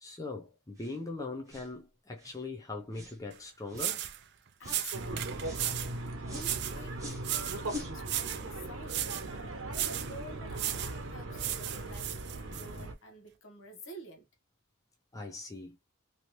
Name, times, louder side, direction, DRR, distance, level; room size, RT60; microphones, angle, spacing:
voice 1, 0.0-4.0 15.1-15.8, left 3 dB, 15° left, 0.5 m, -41 dB
sound 1, 0.8-1.0 1.5-1.7 2.2-2.4 2.9-3.2 3.7-3.9 4.6-4.9 5.4-5.7 6.2-6.5 7.0-7.3 7.6-7.9, left 1 dB, 15° right, 0.9 m, -44 dB
sound 2, 3.3-3.4 3.7-4.2 4.7-6.0 6.4-6.8 7.2-7.7 8.0-8.5 8.9-9.3 9.7-10.1 10.5-11.0 11.4-12.7, right 12 dB, 50° right, 0.4 m, -35 dB
voice 2, 4.6-5.6 6.3-9.4 9.9-14.3, equal, 65° left, 1.0 m, -50 dB
sound 3, 4.9-12.9, right 2 dB, 70° right, 0.9 m, -39 dB
3.1 x 2.8 x 3.0 m
head